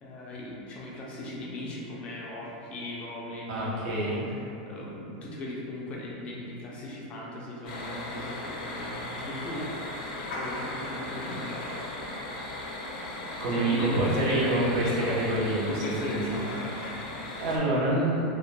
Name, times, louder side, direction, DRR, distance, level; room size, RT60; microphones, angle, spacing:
voice 1, 0.0-11.8 13.5-15.1 15.7-16.7, left 1 dB, 25° left, -4 dB, 0.3 m, -38 dB
voice 2, 3.5-4.3 13.4-16.4 17.4-18.2, right 1 dB, 50° right, -6 dB, 0.6 m, -27 dB
sound 1, 7.6-17.6, left 2 dB, 90° left, 0.5 m, -37 dB
2.1 x 2.1 x 3.0 m, 2.7 s
supercardioid pair, 165°, 4 cm